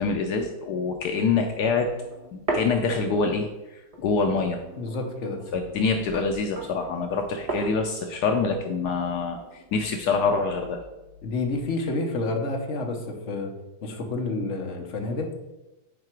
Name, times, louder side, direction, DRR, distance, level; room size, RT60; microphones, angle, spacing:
voice 1, 0.0-1.9 2.3-4.6 5.5-10.8, left 4 dB, 75° left, 4 dB, 1.2 m, -25 dB
sound 1, 1.7-3.5 3.9-9.8, right 2 dB, 25° right, 1.2 m, -37 dB
voice 2, 4.8-5.4 11.2-13.5 13.8-15.3, left 2 dB, 50° left, 2 dB, 1.3 m, -29 dB
8.8 x 4.8 x 4.6 m, 1.0 s
omnidirectional pair, 1.8 m